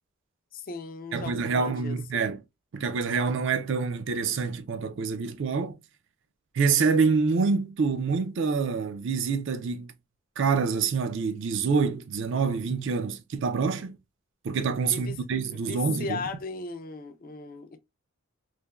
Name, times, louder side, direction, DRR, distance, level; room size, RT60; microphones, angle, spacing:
voice 1, 0.5-2.2 14.9-15.2 15.5-17.8, left 4 dB, 40° left, 0.4 m, -37 dB
voice 2, 1.1-2.4 2.7-5.8 6.5-9.9 10.4-14.0 14.4-16.2, right 5 dB, 60° right, 0.4 m, -26 dB
3.2 x 2.1 x 2.2 m
head